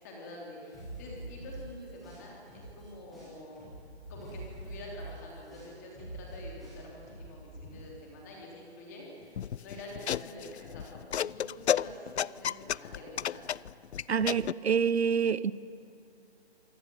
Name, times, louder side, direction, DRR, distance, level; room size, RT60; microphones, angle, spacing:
voice 1, 0.0-3.7 4.1-13.5, left 1 dB, 15° left, 3.4 m, -47 dB
sound 1, 0.7-2.9 3.1-7.7, right 1 dB, ahead, 0.8 m, -45 dB
sound 2, 9.4-14.5, left 9 dB, 80° left, 0.5 m, -32 dB
voice 2, 14.1-15.5, right 7 dB, 75° right, 0.8 m, -27 dB
26.5 x 17.5 x 9.3 m
hypercardioid pair, 180°, 33 cm